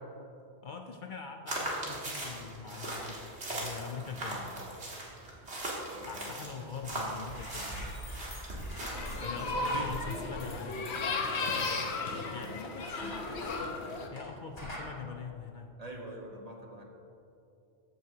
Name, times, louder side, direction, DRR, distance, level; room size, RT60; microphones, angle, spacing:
voice 1, 0.6-4.7 6.1-8.0 9.2-11.3 12.3-13.3 14.1-15.7, left 5 dB, 55° left, 4 dB, 0.6 m, -43 dB
sound 1, 1.5-9.2, right 1 dB, 85° right, 2.3 m, -39 dB
voice 2, 5.9-6.2 9.2-9.9 12.0-12.3 15.8-16.8, right 2 dB, 35° right, 0 dB, 1.3 m, -43 dB
sound 2, 7.2-14.3 14.6-14.9, equal, 35° left, 2.5 m, -44 dB
sound 3, 8.8-14.1, left 3 dB, 85° left, 1.1 m, -35 dB
14.0 x 9.3 x 2.8 m, 2.8 s
omnidirectional pair, 1.1 m